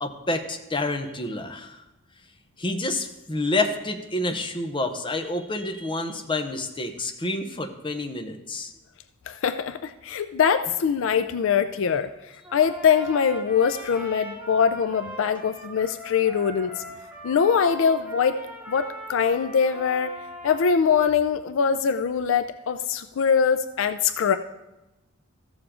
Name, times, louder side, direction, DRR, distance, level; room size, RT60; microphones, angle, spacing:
voice 1, 0.0-1.8 2.6-8.7, left 2 dB, 25° left, 5 dB, 0.8 m, -28 dB
voice 2, 9.3-12.1 12.5-16.8 17.2-18.4 18.7-20.2 20.4-24.4, left 6 dB, 65° left, 10 dB, 0.4 m, -23 dB
Trumpet, 12.4-20.8, equal, 10° right, 1.5 m, -41 dB
14.0 x 7.0 x 3.7 m, 1.0 s
head